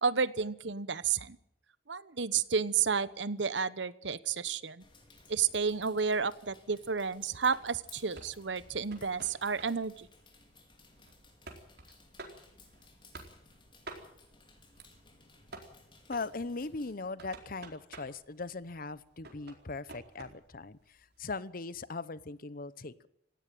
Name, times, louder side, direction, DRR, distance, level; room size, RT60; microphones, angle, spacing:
voice 1, 0.0-1.4 1.9-4.8 5.3-10.1, right 6 dB, 85° right, 16 dB, 1.1 m, -31 dB
sound 1, 4.8-16.9, left 3 dB, 30° left, 5.1 m, -59 dB
sound 2, 7.5-21.2, right 3 dB, 60° right, 4.4 m, -53 dB
voice 2, 16.1-23.1, left 3 dB, 50° left, 17 dB, 0.9 m, -40 dB
18.0 x 16.5 x 9.1 m, 0.77 s
head